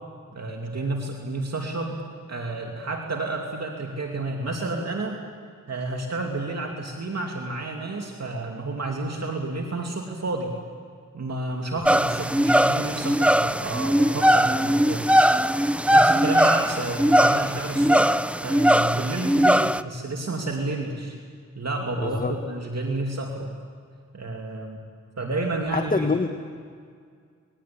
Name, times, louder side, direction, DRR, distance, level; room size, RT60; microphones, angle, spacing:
voice 1, 0.3-2.0 2.3-5.2 5.7-10.5 11.1-15.0 15.9-21.2 21.6-23.5 24.1-24.8 25.2-26.1, right 2 dB, 60° right, 1 dB, 2.8 m, -30 dB
sound 1, 11.8-19.8, equal, 5° right, 0.7 m, -20 dB
voice 2, 22.0-22.3 25.7-26.3, left 4 dB, 30° left, 6 dB, 1.5 m, -25 dB
26.5 x 21.0 x 8.7 m, 2.1 s
cardioid pair, 55°, 29 cm